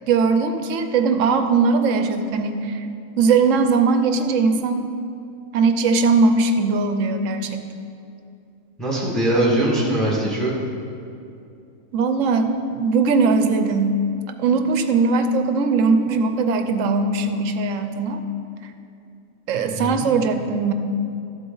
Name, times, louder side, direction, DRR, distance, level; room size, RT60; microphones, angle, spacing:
voice 1, 0.1-2.9 3.2-4.9 5.5-7.7 11.9-14.0 14.4-18.2 19.5-20.7, right 4 dB, 75° right, 8 dB, 1.0 m, -20 dB
voice 2, 8.8-10.5 19.5-20.1, right 1 dB, ahead, -4 dB, 1.7 m, -22 dB
13.0 x 8.0 x 3.9 m, 2.6 s
omnidirectional pair, 1.4 m